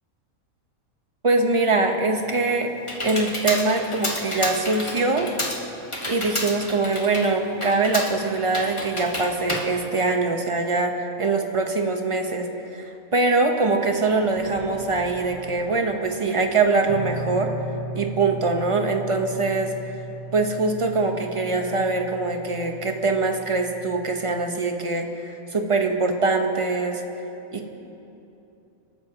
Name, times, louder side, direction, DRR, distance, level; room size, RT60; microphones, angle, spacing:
voice 1, 1.2-2.7 3.0-5.3 6.1-17.5 17.9-19.7 20.3-27.0 27.5-27.7, right 3 dB, 25° right, 4 dB, 1.0 m, -23 dB
Computer keyboard, 2.1-10.6, left 1 dB, 20° left, 1.5 m, -31 dB
sound 1, 13.5-19.3, equal, 90° right, 3.5 m, -46 dB
sound 2, 16.9-24.4, right 2 dB, 40° right, 1.3 m, -37 dB
28.0 x 13.0 x 2.9 m, 2.9 s
omnidirectional pair, 1.4 m